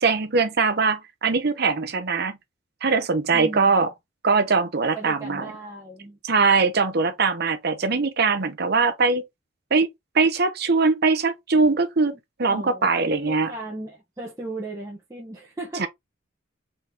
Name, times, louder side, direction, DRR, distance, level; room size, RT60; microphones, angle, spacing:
voice 1, 0.0-2.4 2.8-3.9 4.2-5.5 6.2-9.2 9.7-9.9 10.1-12.1 12.4-13.5 15.8-15.9, right 4 dB, 50° right, 0.8 m, -21 dB
voice 2, 3.3-3.9 4.9-6.5 12.5-15.9, right 2 dB, 15° right, 1.1 m, -36 dB
4.0 x 4.0 x 2.8 m
head